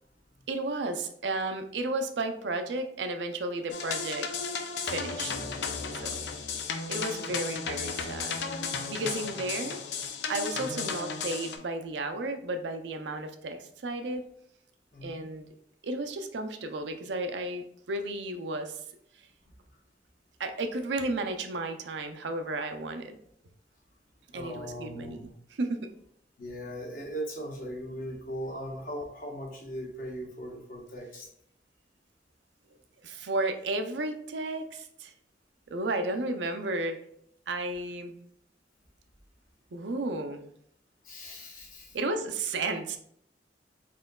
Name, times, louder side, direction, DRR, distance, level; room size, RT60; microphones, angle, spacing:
voice 1, 0.5-4.3 4.8-5.3 5.9-6.2 6.9-8.4 8.9-9.8 10.3-14.2 15.0-15.5 15.8-18.8 20.4-23.2 24.3-25.9 33.0-35.1 35.7-37.0 37.5-38.2 39.7-40.5 41.9-43.0, right 2 dB, 80° right, 7 dB, 0.5 m, -33 dB
sound 1, 3.7-11.6, left 5 dB, 75° left, 0.5 m, -34 dB
voice 2, 5.2-6.4 7.2-7.5 10.5-10.7 14.9-15.3 24.3-25.3 26.4-31.3 41.0-42.0, equal, 50° left, -1 dB, 1.1 m, -40 dB
4.2 x 3.8 x 2.3 m, 0.70 s
head